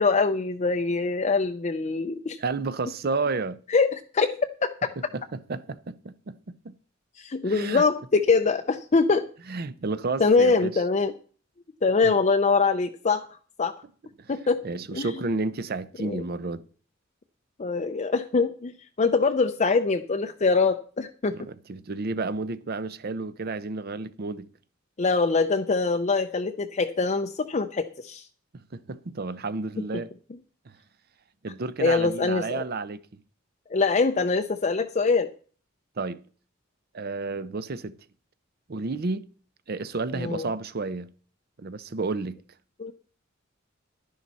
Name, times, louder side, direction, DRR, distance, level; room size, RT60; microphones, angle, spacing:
voice 1, 0.0-2.4 3.7-4.7 7.2-9.3 10.2-11.1 11.8-13.7 14.3-14.6 14.9-15.1 16.0-16.2 17.6-21.4 25.0-28.2 31.8-32.6 33.7-35.3 40.1-40.5 42.8-42.9, left 4 dB, 35° left, 0.5 m, -24 dB
voice 2, 2.4-3.6 5.1-6.7 7.4-7.8 9.5-10.7 12.0-12.1 14.2-14.3 14.6-16.7 21.3-24.5 28.5-30.1 30.7-30.8 31.4-33.0 36.0-36.2 36.9-38.0 38.7-39.3 39.7-41.1 41.6-42.4, right 3 dB, 50° right, 0.6 m, -31 dB
11.0 x 10.5 x 4.1 m
head